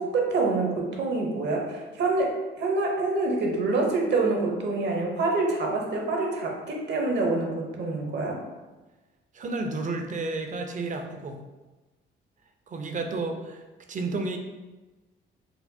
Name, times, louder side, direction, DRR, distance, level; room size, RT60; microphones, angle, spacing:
voice 1, 0.0-8.4, right 3 dB, 60° right, 0 dB, 0.8 m, -26 dB
voice 2, 9.3-11.4 12.7-13.6 13.9-14.4, right 3 dB, 40° right, 4 dB, 0.4 m, -31 dB
4.2 x 2.0 x 2.7 m, 1.2 s
cardioid pair, 90°, 20 cm